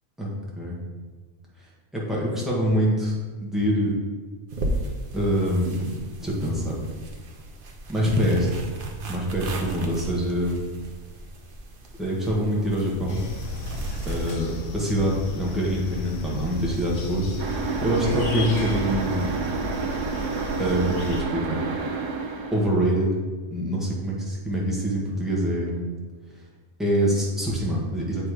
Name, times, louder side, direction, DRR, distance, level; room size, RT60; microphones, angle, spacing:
voice 1, 0.2-0.8 1.9-3.9 5.1-5.9 6.2-6.8 7.9-8.6 9.1-10.6 12.0-13.2 14.0-17.3 17.8-19.3 20.6-21.6 22.5-23.1 23.5-25.8 26.8-28.3, equal, ahead, -5 dB, 1.4 m, -25 dB
sound 1, 4.5-14.4, right 1 dB, 50° right, 0.9 m, -35 dB
sound 2, 13.1-21.2, left 2 dB, 75° left, 1.2 m, -34 dB
sound 3, 17.4-22.8, right 5 dB, 75° right, 1.1 m, -29 dB
7.9 x 3.5 x 4.8 m, 1.4 s
omnidirectional pair, 1.3 m